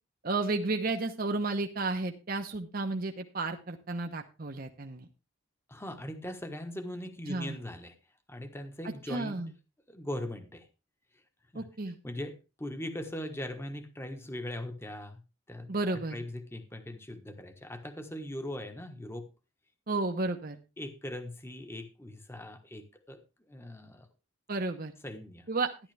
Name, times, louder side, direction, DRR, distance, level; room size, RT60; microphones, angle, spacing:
voice 1, 0.2-5.0 7.3-7.6 9.1-9.5 11.5-12.0 15.7-16.2 19.9-20.6 24.5-24.9 25.5-25.7, right 3 dB, 45° right, 5 dB, 0.9 m, -32 dB
voice 2, 5.7-8.0 8.3-9.4 9.9-10.7 11.5-11.7 12.0-15.2 15.5-19.3 20.8-23.2 23.5-24.1 25.0-25.5, left 1 dB, 10° left, 8 dB, 1.2 m, -40 dB
12.0 x 11.5 x 3.4 m, 0.29 s
head